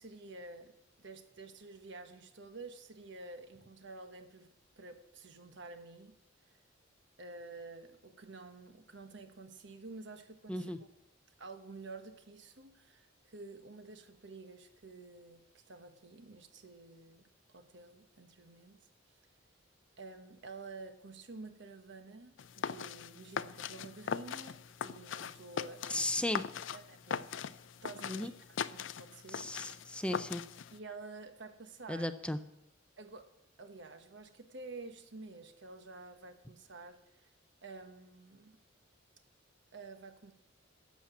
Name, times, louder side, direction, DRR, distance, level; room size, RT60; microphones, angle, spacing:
voice 1, 0.0-4.5 4.8-6.1 7.2-10.9 11.4-18.8 20.0-26.1 26.7-27.3 27.8-28.3 28.7-29.7 30.7-32.1 33.0-33.3 33.6-37.3 37.6-38.6 39.7-40.3, right 3 dB, 65° right, 1.2 m, -50 dB
voice 2, 10.5-10.8 25.9-26.5 28.1-28.3 29.3-30.4 31.9-32.4, left 1 dB, 5° left, 0.4 m, -35 dB
sound 1, 22.4-30.8, left 7 dB, 65° left, 0.4 m, -41 dB
11.5 x 7.4 x 8.4 m
head